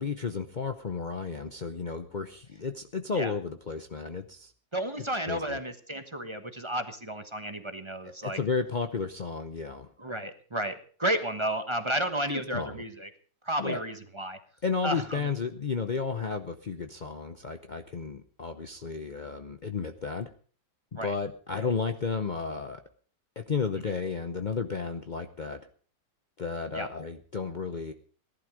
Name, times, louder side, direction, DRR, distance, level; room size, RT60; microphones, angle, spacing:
voice 1, 0.0-4.5 5.3-5.6 8.0-9.9 12.3-12.8 13.6-13.8 14.6-20.3 20.9-22.8 23.4-25.6 26.4-27.9, left 5 dB, 70° left, 7 dB, 0.4 m, -33 dB
voice 2, 4.7-8.4 10.0-13.1 13.4-14.4 14.8-15.3 21.0-21.1 21.6-21.7 26.7-26.9, right 1 dB, 20° right, 8 dB, 1.0 m, -32 dB
18.0 x 11.5 x 5.0 m, 0.43 s
omnidirectional pair, 2.1 m